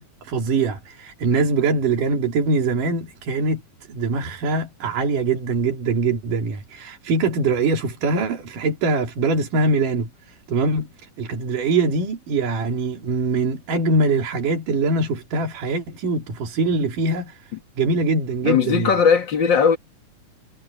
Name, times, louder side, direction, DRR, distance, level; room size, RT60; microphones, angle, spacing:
voice 1, 0.0-3.6 3.9-10.9 11.2-17.4 17.8-18.9, right 3 dB, 80° right, 4.4 m, -23 dB
voice 2, 18.4-19.8, left 6 dB, 45° left, 1.9 m, -18 dB
omnidirectional pair, 3.7 m